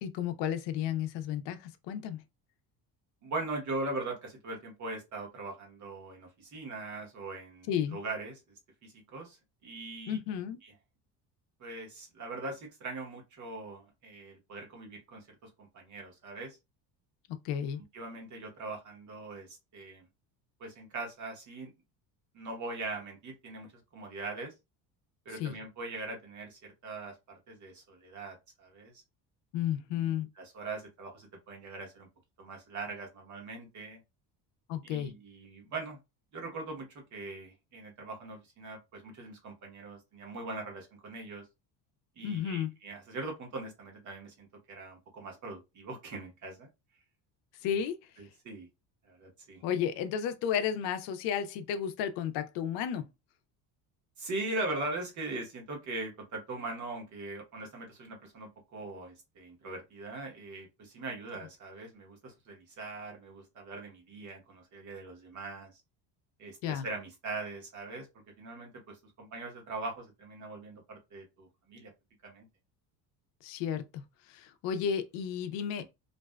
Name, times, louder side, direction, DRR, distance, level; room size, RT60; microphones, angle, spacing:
voice 1, 0.0-1.6 1.9-2.2 7.7-8.0 10.1-10.6 17.4-17.8 25.4-25.5 29.5-30.3 34.7-35.1 42.2-42.7 47.6-48.0 49.6-53.0 66.6-66.9 73.4-74.0 74.3-75.8, left 9 dB, 80° left, 0.6 m, -32 dB
voice 2, 3.2-8.4 8.8-9.4 9.6-10.2 10.6-10.7 11.6-16.6 17.9-20.1 20.6-21.7 22.3-23.7 23.9-24.5 25.2-27.1 27.5-28.9 29.9-32.1 32.4-34.0 34.8-36.0 36.3-41.4 42.2-46.7 47.6-47.8 48.2-48.7 49.1-49.6 54.2-65.8 66.4-68.1 68.4-71.9 72.2-72.5, right 2 dB, 45° right, 1.0 m, -41 dB
2.6 x 2.2 x 2.2 m
cardioid pair, 160°, 43 cm